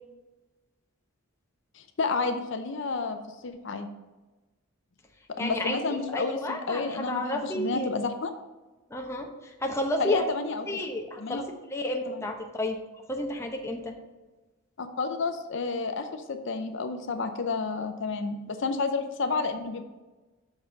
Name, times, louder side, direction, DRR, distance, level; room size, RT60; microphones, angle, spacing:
voice 1, 1.7-3.2 3.4-3.9 5.4-8.3 10.0-10.7 11.2-11.4 12.0-12.3 14.8-19.8, left 4 dB, 60° left, 7 dB, 0.5 m, -30 dB
voice 2, 5.4-7.9 8.9-10.2 10.7-11.4 11.7-12.8 13.1-13.9, left 1 dB, 15° left, 2 dB, 0.7 m, -31 dB
6.0 x 5.3 x 5.2 m, 1.2 s
head